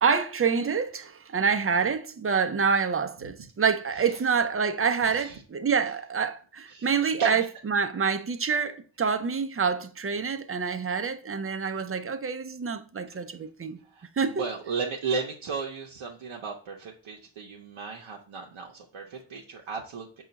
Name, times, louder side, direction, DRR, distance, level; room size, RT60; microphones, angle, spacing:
voice 1, 0.0-13.8 14.2-14.4, right 6 dB, 30° right, 0.5 m, -27 dB
voice 2, 5.1-5.4 6.7-6.9 7.2-7.5 13.9-14.1 14.4-20.2, right 5 dB, 75° right, 0.7 m, -34 dB
5.5 x 2.4 x 3.9 m
cardioid pair, 40°, 48 cm